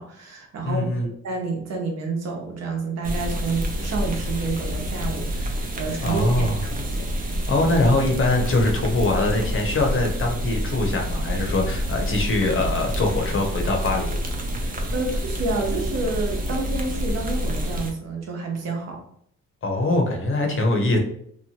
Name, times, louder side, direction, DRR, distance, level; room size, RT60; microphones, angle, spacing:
voice 1, 0.0-0.8 1.2-7.1 14.6-19.0, right 3 dB, 60° right, 1 dB, 0.9 m, -29 dB
voice 2, 0.6-1.1 6.0-6.6 7.5-14.2 19.6-21.0, left 2 dB, 45° left, 2 dB, 0.8 m, -22 dB
sound 1, 3.0-17.9, equal, 30° right, 0.6 m, -28 dB
2.8 x 2.1 x 2.8 m, 0.65 s
cardioid pair, 90°, 30 cm